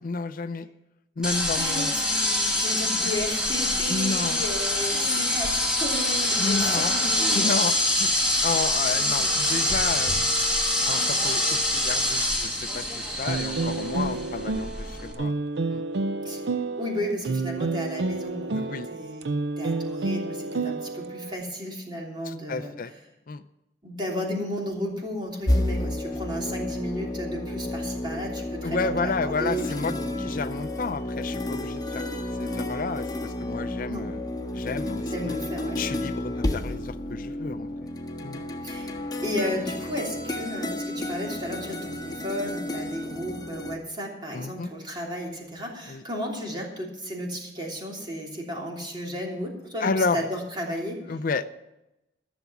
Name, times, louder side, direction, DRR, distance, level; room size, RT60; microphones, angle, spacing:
voice 1, 0.0-0.7 1.2-1.9 3.9-4.4 4.9-5.3 6.4-6.9 7.3-8.1 8.4-10.2 10.9-15.3 15.7-15.8 18.5-18.9 22.2-22.9 23.3-23.4 28.6-32.0 32.4-34.2 34.5-35.4 35.8-37.7 38.2-38.4 44.3-44.7 45.9-46.0 49.8-50.2 51.1-51.5, left 4 dB, 50° left, 12 dB, 0.5 m, -31 dB
sound 1, 1.2-15.1, left 1 dB, 5° right, 2.1 m, -25 dB
voice 2, 1.6-7.6 8.9-9.3 14.0-14.2 16.2-16.5 16.8-18.6 18.9-19.3 19.6-22.7 23.8-30.2 33.9-34.1 35.1-35.8 38.6-38.9 39.2-51.0, equal, 25° right, -1 dB, 3.0 m, -34 dB
sound 2, 13.3-21.4, right 3 dB, 70° right, 0.5 m, -30 dB
sound 3, 25.5-43.7, left 1 dB, 25° left, 1.4 m, -31 dB
14.5 x 7.1 x 7.2 m, 0.94 s
head